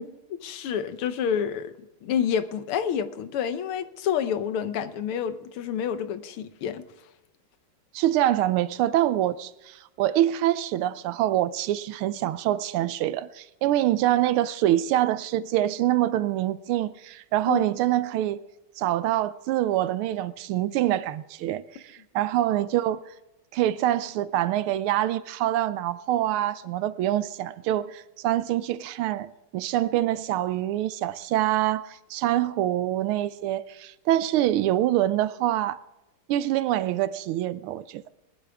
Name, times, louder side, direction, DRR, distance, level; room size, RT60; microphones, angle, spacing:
voice 1, 0.0-1.7 2.0-6.8 17.5-17.7, left 8 dB, 85° left, 1.8 m, -28 dB
voice 2, 7.9-18.4 18.8-23.0 23.5-35.8 36.3-38.0, right 13 dB, 85° right, 1.5 m, -25 dB
19.5 x 12.0 x 3.5 m
omnidirectional pair, 2.3 m